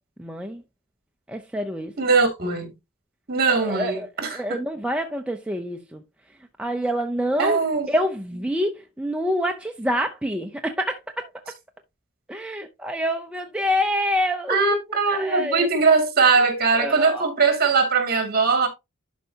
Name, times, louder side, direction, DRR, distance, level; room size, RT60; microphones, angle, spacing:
voice 1, 0.2-0.6 1.3-1.9 3.6-4.1 4.3-6.0 6.6-7.6 7.9-11.3 12.3-14.6 15.1-15.7 16.8-17.3, equal, 5° right, 0.5 m, -26 dB
voice 2, 2.0-2.7 3.3-4.6 7.4-7.9 14.5-18.7, right 4 dB, 45° right, 2.3 m, -21 dB
11.5 x 4.7 x 2.7 m
head